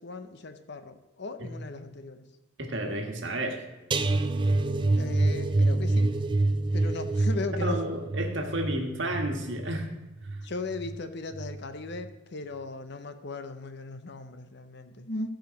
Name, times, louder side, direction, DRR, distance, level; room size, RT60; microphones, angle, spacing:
voice 1, 0.0-2.2 5.0-6.1 6.7-7.8 10.4-15.4, left 3 dB, 55° left, 9 dB, 0.7 m, -37 dB
voice 2, 2.6-3.6 7.6-9.9 10.3-10.4, right 1 dB, 60° right, 3 dB, 1.4 m, -31 dB
sound 1, 3.9-11.0 11.3-11.6 12.0-12.1, right 2 dB, 25° right, 0.4 m, -27 dB
14.0 x 5.1 x 5.1 m, 1.1 s
head